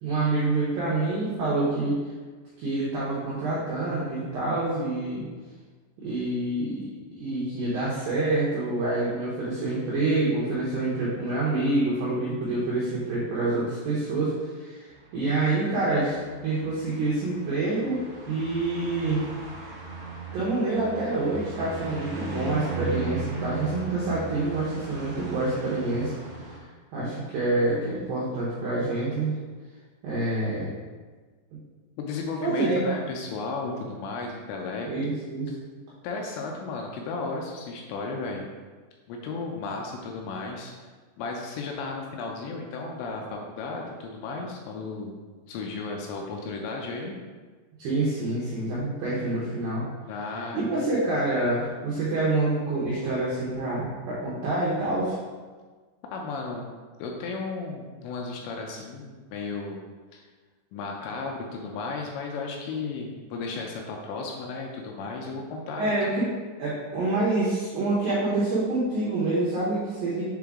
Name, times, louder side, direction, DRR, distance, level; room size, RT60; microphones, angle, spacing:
voice 1, 0.0-2.0 2.6-5.3 6.0-6.9 7.2-18.0 18.3-19.3 20.3-26.1 26.9-29.4 30.0-30.7 32.4-32.9 34.9-35.5 47.8-49.9 50.5-55.2 65.8-66.3 66.6-70.2, right 2 dB, 90° right, -7 dB, 2.0 m, -27 dB
sound 1, 14.9-26.6, right 3 dB, 60° right, 3.1 m, -38 dB
voice 2, 32.0-34.9 35.5-35.6 36.0-38.5 39.1-40.9 41.2-45.2 45.5-47.2 50.0-50.7 50.9-51.0 56.1-56.7 57.0-59.8 60.1-60.3 60.7-66.1, left 3 dB, 80° left, 1 dB, 2.6 m, -34 dB
7.5 x 3.9 x 3.6 m, 1.4 s
omnidirectional pair, 5.7 m